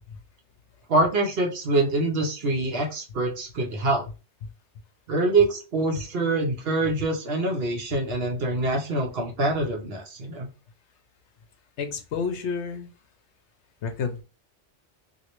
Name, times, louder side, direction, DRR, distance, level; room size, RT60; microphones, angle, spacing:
voice 1, 0.9-4.0 5.1-10.5, right 2 dB, 55° right, 1 dB, 1.0 m, -25 dB
voice 2, 11.8-12.9 13.8-14.2, left 5 dB, 70° left, 7 dB, 0.9 m, -30 dB
3.0 x 2.7 x 2.9 m, 0.32 s
omnidirectional pair, 1.3 m